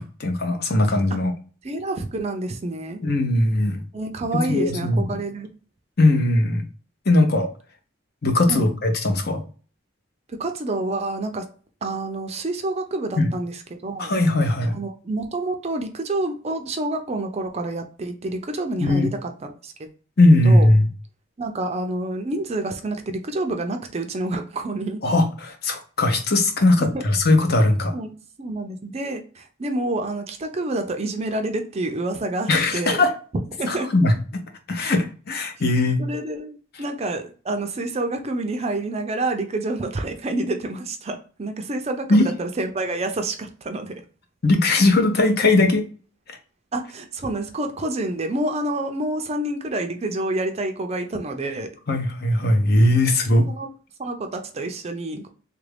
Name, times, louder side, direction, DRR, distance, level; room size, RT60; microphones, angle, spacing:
voice 1, 0.0-1.3 3.0-3.8 4.3-5.2 6.0-6.6 7.1-7.5 8.2-9.4 13.2-13.3 14.0-14.8 18.8-19.1 20.2-20.9 25.0-27.9 32.5-33.1 33.7-34.4 34.7-36.0 42.1-42.2 44.4-45.8 51.9-53.5, left 2 dB, 50° left, 5 dB, 0.7 m, -19 dB
voice 2, 1.6-3.0 3.9-5.5 8.5-8.7 10.4-11.5 11.8-13.5 13.8-14.1 14.7-19.9 20.4-20.7 21.4-25.0 26.8-27.0 27.9-28.1 28.4-33.0 33.6-33.9 36.0-44.0 46.7-51.7 53.5-53.7 54.0-55.3, right 2 dB, 30° right, 6 dB, 0.4 m, -28 dB
3.3 x 2.5 x 3.3 m, 0.39 s
head